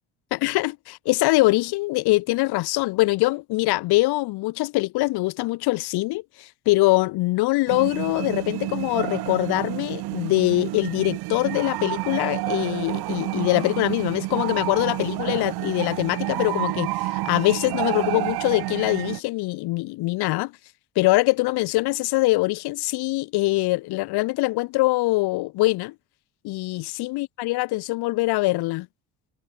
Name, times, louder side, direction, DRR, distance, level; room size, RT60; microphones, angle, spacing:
voice 1, 0.3-20.5 21.0-25.9 26.4-28.9, left 21 dB, 85° left, 4.2 m, -23 dB
sound 1, 7.7-19.2, right 19 dB, 80° right, 7.3 m, -29 dB
cardioid pair, 120°, 38 cm